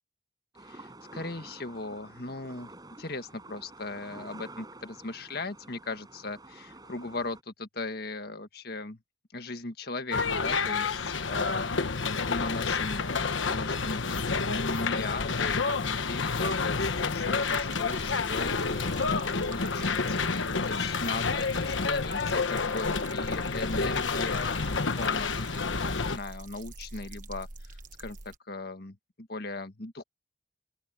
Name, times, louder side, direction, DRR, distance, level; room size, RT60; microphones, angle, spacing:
sound 1, 0.5-7.4, right 2 dB, 20° right, 7.8 m, -49 dB
voice 1, 0.6-2.7 3.0-9.0 9.3-13.1 13.5-30.0, left 3 dB, 55° left, 1.7 m, -38 dB
sound 2, 10.1-26.2, left 4 dB, 85° left, 1.2 m, -29 dB
sound 3, 17.4-28.4, right 2 dB, 45° right, 1.3 m, -46 dB
open air
head